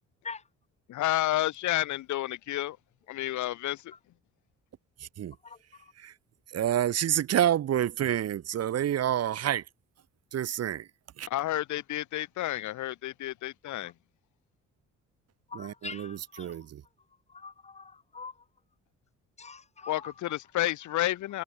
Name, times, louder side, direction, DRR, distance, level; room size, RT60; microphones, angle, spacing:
voice 1, 0.9-2.8 3.1-3.9 11.3-13.9 19.9-21.4, left 15 dB, 75° left, 0.9 m, -30 dB
voice 2, 6.5-9.6 10.3-10.9 11.2-11.3 15.5-16.8, right 11 dB, 55° right, 1.0 m, -28 dB
voice 3, 15.5-16.6 17.3-18.3 19.4-20.1, left 5 dB, 20° left, 0.6 m, -43 dB
cardioid pair, 90°, 30 cm